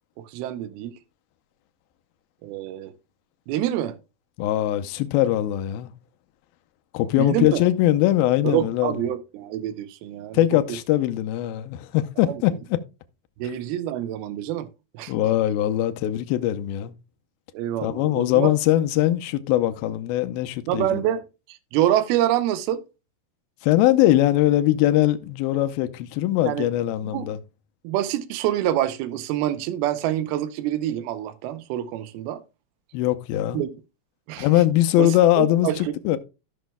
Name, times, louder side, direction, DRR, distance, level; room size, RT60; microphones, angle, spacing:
voice 1, 0.3-0.9 2.4-2.9 3.5-4.0 7.2-7.6 8.4-10.4 12.2-12.4 13.4-14.7 14.9-15.1 17.5-18.5 20.7-21.2 21.5-22.8 26.4-26.7 27.1-27.3 27.8-32.4 33.5-33.7 34.3-34.5 35.0-35.9, right 12 dB, 85° right, 2.6 m, -26 dB
voice 2, 4.4-5.9 6.9-9.0 10.3-12.8 15.1-16.9 17.8-21.0 23.6-27.4 32.9-33.7 34.4-36.2, left 14 dB, 85° left, 2.4 m, -21 dB
14.5 x 6.1 x 2.2 m
omnidirectional pair, 4.4 m